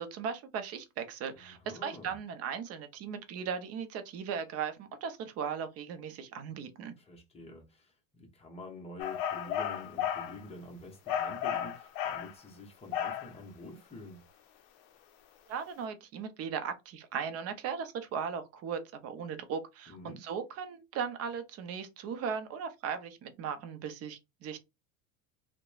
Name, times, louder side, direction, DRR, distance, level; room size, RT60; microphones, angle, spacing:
voice 1, 0.0-6.9 15.5-24.6, right 7 dB, 40° right, 0.5 m, -37 dB
voice 2, 1.3-2.2 7.0-14.2 19.9-20.2, left 2 dB, 15° left, 0.8 m, -47 dB
sound 1, 9.0-10.4 11.1-12.3 12.9-13.3, left 9 dB, 60° left, 0.5 m, -33 dB
2.8 x 2.1 x 2.3 m
supercardioid pair, 130°, 40 cm